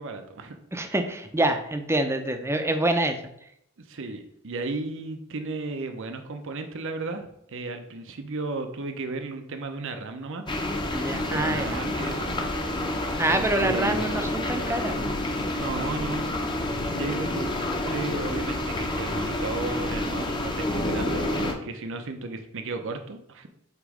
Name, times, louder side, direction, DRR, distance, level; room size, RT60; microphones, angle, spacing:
voice 1, 0.0-0.6 3.8-10.5 11.3-12.3 13.3-14.3 15.5-16.3 16.9-17.5 17.8-23.5, right 3 dB, 60° right, 6 dB, 0.7 m, -34 dB
voice 2, 0.7-3.2 10.9-11.8 13.2-15.1, right 1 dB, 10° right, 6 dB, 0.6 m, -26 dB
sound 1, 10.5-21.5, left 1 dB, 20° left, 0.8 m, -29 dB
8.1 x 3.1 x 4.9 m, 0.75 s
head